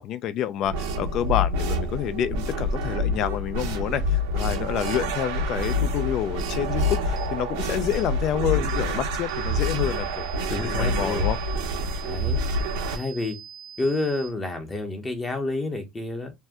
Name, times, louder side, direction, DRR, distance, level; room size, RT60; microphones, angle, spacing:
voice 1, 0.0-11.4, left 10 dB, 50° left, 0.3 m, -28 dB
sound 1, 0.6-13.0, left 1 dB, 85° right, 0.9 m, -27 dB
sound 2, 4.9-5.0 5.6-5.8 6.4-6.6 7.2-7.3 7.9-8.1 8.7-8.8 9.3-14.3, right 8 dB, 30° right, 0.6 m, -44 dB
voice 2, 10.5-11.3 12.0-12.4 12.9-13.4 13.8-16.3, left 2 dB, 20° left, 0.7 m, -29 dB
2.6 x 2.2 x 3.4 m
supercardioid pair, 130°, 0 cm